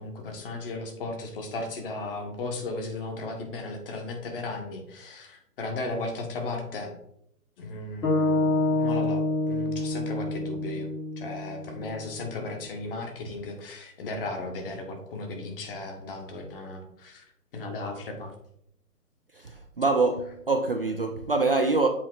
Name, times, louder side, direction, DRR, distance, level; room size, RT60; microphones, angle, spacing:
voice 1, 0.0-6.9 7.6-10.9 11.2-17.2 17.5-18.3, left 2 dB, 35° left, 1.6 m, -36 dB
sound 1, 8.0-12.3, left 2 dB, 80° left, 2.9 m, -27 dB
voice 2, 19.3-21.9, right 3 dB, 40° right, 0.4 m, -25 dB
7.7 x 4.3 x 4.0 m
hypercardioid pair, 145°, 47 cm